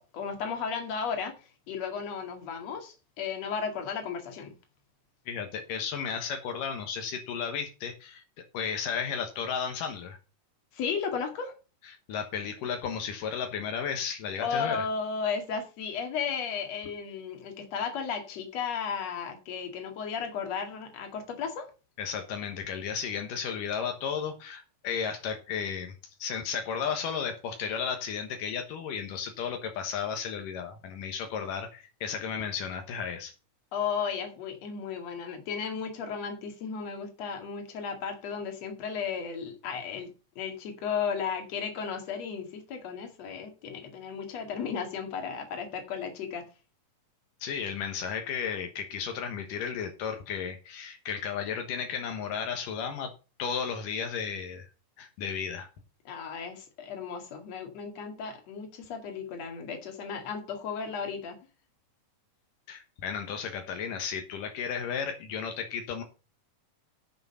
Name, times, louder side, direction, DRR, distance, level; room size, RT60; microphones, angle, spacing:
voice 1, 0.1-1.3 1.7-4.5 10.7-11.5 14.4-21.7 33.7-40.1 40.4-46.4 56.0-61.4, left 6 dB, 55° left, 3.2 m, -34 dB
voice 2, 5.3-8.2 8.5-10.2 11.8-14.8 22.0-25.9 26.2-33.3 47.4-53.1 53.4-54.7 55.0-55.7 62.7-66.0, left 7 dB, 80° left, 2.9 m, -34 dB
11.0 x 6.9 x 5.5 m
omnidirectional pair, 3.8 m